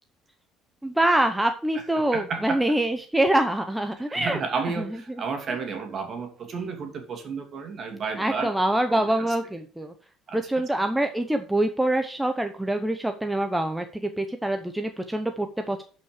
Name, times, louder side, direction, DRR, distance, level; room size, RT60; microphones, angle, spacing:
voice 1, 0.8-4.4 4.8-4.9 8.2-9.9 10.3-15.8, right 1 dB, 5° right, 6 dB, 0.8 m, -25 dB
voice 2, 2.1-2.6 4.1-8.5 8.9-9.3 10.3-10.8, right 5 dB, 40° right, 5 dB, 2.7 m, -32 dB
11.5 x 5.7 x 4.9 m, 0.40 s
cardioid pair, 130°, 0 cm